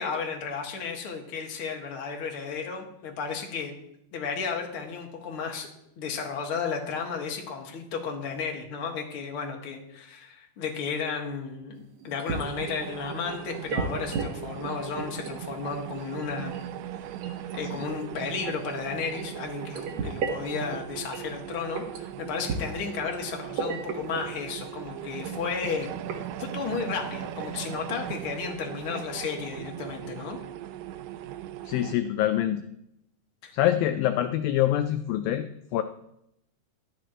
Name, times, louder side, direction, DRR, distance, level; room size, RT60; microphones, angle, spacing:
voice 1, 0.0-3.7 4.1-5.7 6.0-16.5 17.5-25.9 26.4-30.4 33.4-33.5, left 5 dB, 45° left, 2 dB, 1.9 m, -33 dB
sound 1, 11.9-12.6 13.0-14.3 14.6-15.4 15.7-19.3 19.7-21.3 21.7-22.0 22.5-23.2 23.5-24.3 24.7-24.8 25.1-25.3 25.7-26.2 26.7-26.8 27.2-27.5 27.9-28.0, right 4 dB, 60° right, 2.1 m, -35 dB
sound 2, 12.3-31.9, right 11 dB, 90° right, 1.9 m, -39 dB
voice 2, 31.7-32.6 33.5-35.5 35.7-35.8, left 12 dB, 80° left, 9 dB, 2.2 m, -25 dB
13.0 x 12.5 x 3.0 m, 0.79 s
omnidirectional pair, 4.5 m